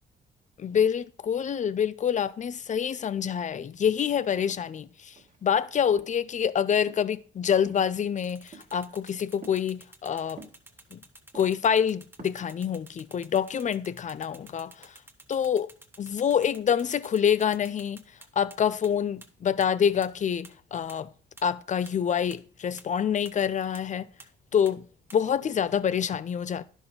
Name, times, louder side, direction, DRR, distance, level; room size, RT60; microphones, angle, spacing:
voice 1, 0.6-10.4 10.9-11.0 11.3-14.9 15.3-15.7 16.0-18.0 18.4-21.1 21.4-24.1 24.5-24.9 25.1-26.6, left 8 dB, 40° left, 0.5 m, -26 dB
sound 1, 4.0-4.1 4.4-5.5 6.0-6.3 6.8-7.2 7.6-8.0 8.5-8.8 9.4-9.6 10.4-10.9 11.3-11.6 12.0-12.5, right 4 dB, 40° right, 1.6 m, -49 dB
sound 2, 8.2-18.6 18.8-18.9 19.2-19.3 19.6-19.7 20.0-20.1 20.4-20.5 20.9-21.0 21.4-21.5 21.9-22.0 22.3-22.4 22.8-22.9 23.3-23.4 23.7-23.8 24.2-24.3 24.7-24.8 25.1-25.2, right 2 dB, 10° right, 1.2 m, -50 dB
10.5 x 6.1 x 3.8 m
cardioid pair, 90°, 20 cm